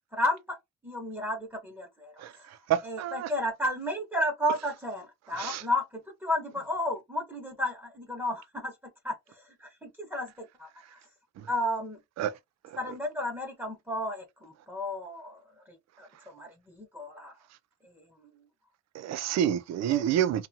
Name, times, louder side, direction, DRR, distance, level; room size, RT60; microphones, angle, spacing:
voice 1, 0.1-0.6 0.8-2.5 2.8-11.0 11.5-12.0 12.8-17.3 17.8-18.3 19.9-20.1, left 1 dB, 5° right, 1.0 m, -33 dB
voice 2, 2.7-3.3 5.4-5.6 11.4-11.5 12.2-12.3 12.7-12.8 18.9-20.5, right 10 dB, 60° right, 0.5 m, -28 dB
2.7 x 2.4 x 2.7 m
cardioid pair, 90°, 30 cm